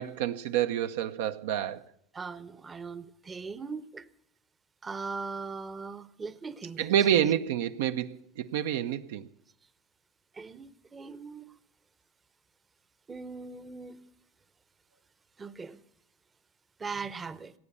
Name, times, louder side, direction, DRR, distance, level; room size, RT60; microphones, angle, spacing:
voice 1, 0.0-1.8 6.8-9.3, right 10 dB, 75° right, 0.7 m, -28 dB
voice 2, 2.1-4.1 4.8-7.3 10.3-11.6 13.1-14.0 15.4-15.8 16.8-17.5, right 4 dB, 20° right, 0.7 m, -40 dB
17.5 x 8.7 x 8.4 m
supercardioid pair, 115°, 0 cm